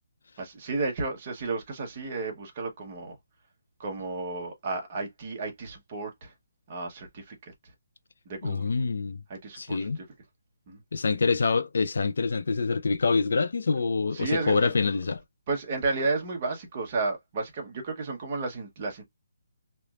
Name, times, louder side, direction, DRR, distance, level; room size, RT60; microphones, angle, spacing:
voice 1, 0.4-3.2 3.8-6.3 6.7-7.7 8.2-8.7 9.3-10.1 10.7-10.8 14.1-14.9 15.5-19.0, right 3 dB, 20° right, 0.9 m, -32 dB
voice 2, 8.4-9.2 9.6-10.0 10.9-15.2, left 4 dB, 55° left, 0.4 m, -26 dB
3.4 x 3.0 x 2.3 m
hypercardioid pair, 175°, 0 cm